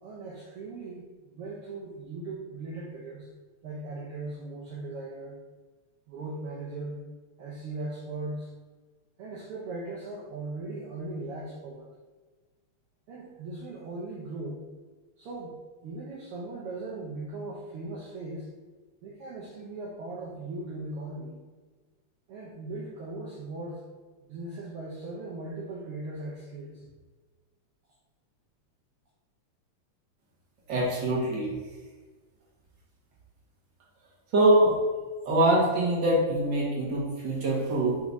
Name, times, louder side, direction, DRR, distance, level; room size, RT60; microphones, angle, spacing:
voice 1, 0.0-3.3 3.6-5.4 6.1-7.0 7.4-8.5 9.2-11.9 13.1-14.6 15.2-18.5 19.0-21.3 22.3-23.8 24.3-26.9, right 2 dB, 65° right, -5 dB, 1.5 m, -38 dB
voice 2, 30.7-31.5 34.3-34.8 35.2-38.0, right 1 dB, 45° right, -4 dB, 1.9 m, -23 dB
5.6 x 3.8 x 4.7 m, 1.4 s
omnidirectional pair, 3.4 m